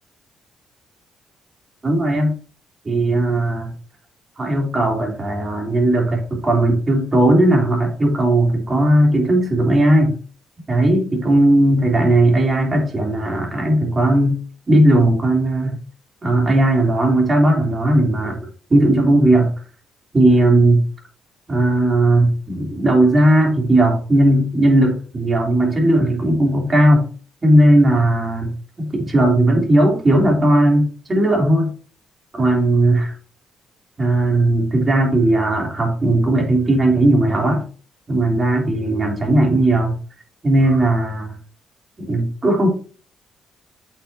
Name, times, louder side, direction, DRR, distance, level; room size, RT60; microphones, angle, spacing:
voice 1, 1.8-2.3 2.9-3.7 4.4-10.2 10.7-14.4 14.7-15.7 16.2-18.4 18.7-19.5 20.1-20.8 21.5-27.1 27.4-28.5 28.8-31.7 32.3-33.1 34.0-37.6 38.1-40.0 40.4-41.3 42.0-42.7, right 1 dB, 30° right, 0 dB, 3.5 m, -16 dB
8.4 x 6.5 x 2.9 m, 0.39 s
cardioid pair, 90°, 0 cm